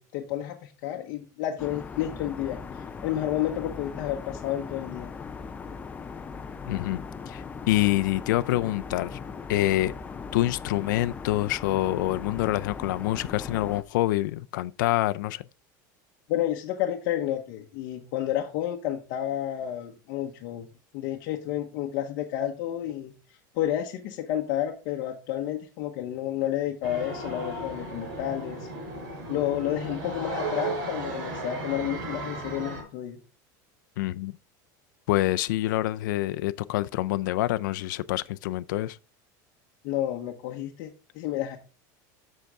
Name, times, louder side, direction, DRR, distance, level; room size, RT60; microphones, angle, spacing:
voice 1, 0.0-5.1 16.3-20.7 20.9-23.1 23.5-28.7 29.3-33.2 39.8-41.6, left 12 dB, 55° left, 1.0 m, -30 dB
sound 1, 1.6-13.8, left 5 dB, 15° left, 0.5 m, -39 dB
voice 2, 6.7-9.2 9.5-9.9 10.3-15.4 34.0-34.3 35.1-39.0, left 16 dB, 90° left, 0.4 m, -26 dB
sound 2, 26.8-32.8, right 2 dB, 85° right, 4.6 m, -35 dB
7.8 x 6.5 x 3.5 m
supercardioid pair, 150°, 10 cm